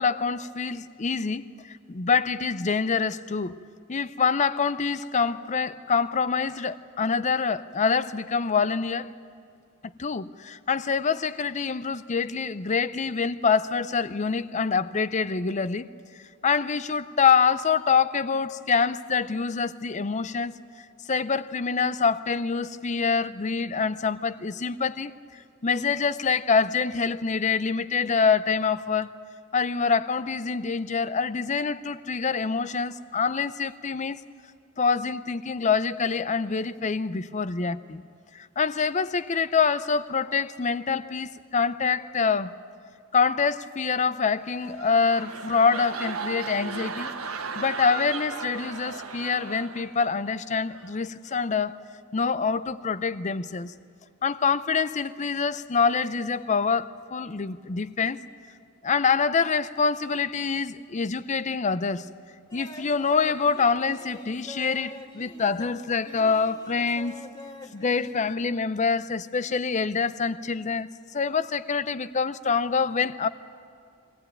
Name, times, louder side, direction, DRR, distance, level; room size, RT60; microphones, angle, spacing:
voice 1, 0.0-3.6 3.9-9.1 10.0-15.9 16.4-20.5 21.1-25.1 25.6-29.1 29.5-34.2 34.8-38.0 38.3-42.5 43.1-47.1 47.5-51.8 52.1-53.7 54.2-58.2 58.8-62.1 62.5-67.2 67.7-70.9 71.1-73.3, left 5 dB, 35° left, 0.5 m, -25 dB
sound 1, 44.4-50.3 50.7-51.0, right 4 dB, 90° right, 1.5 m, -36 dB
sound 2, 62.5-68.3, left 1 dB, 20° left, 1.5 m, -45 dB
23.0 x 17.0 x 9.0 m
head